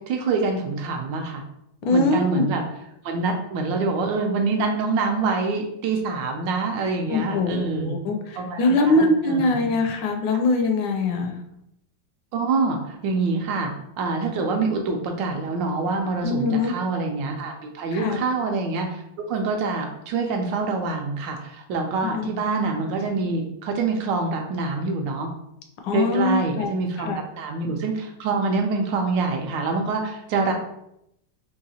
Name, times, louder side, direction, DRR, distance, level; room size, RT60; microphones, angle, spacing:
voice 1, 0.1-1.4 1.9-2.6 3.0-8.0 8.4-9.7 12.3-19.0 19.3-25.3 25.9-30.5, right 3 dB, 75° right, 3 dB, 1.2 m, -26 dB
voice 2, 1.9-2.4 7.1-11.4 16.2-16.7 17.9-18.2 22.0-22.3 25.8-26.7 27.0-27.2, left 2 dB, 75° left, 3 dB, 1.2 m, -22 dB
3.9 x 2.6 x 2.7 m, 0.78 s
omnidirectional pair, 2.1 m